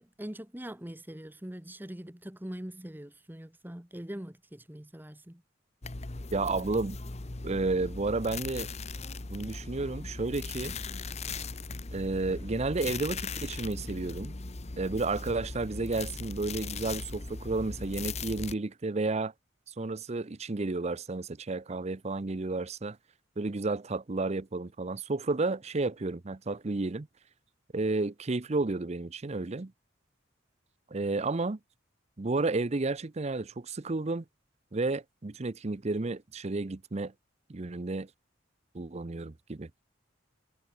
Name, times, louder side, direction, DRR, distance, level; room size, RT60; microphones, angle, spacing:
voice 1, 0.0-5.4, equal, 10° right, 1.1 m, -42 dB
sound 1, 5.8-18.5, left 3 dB, 35° left, 1.0 m, -39 dB
voice 2, 6.3-7.0 7.4-8.7 9.3-10.7 11.9-14.3 14.8-19.3 19.8-23.0 23.4-27.1 27.7-29.7 30.9-31.6 32.2-34.2 34.7-37.1 37.5-38.1 38.7-39.7, right 3 dB, 35° right, 0.6 m, -32 dB
head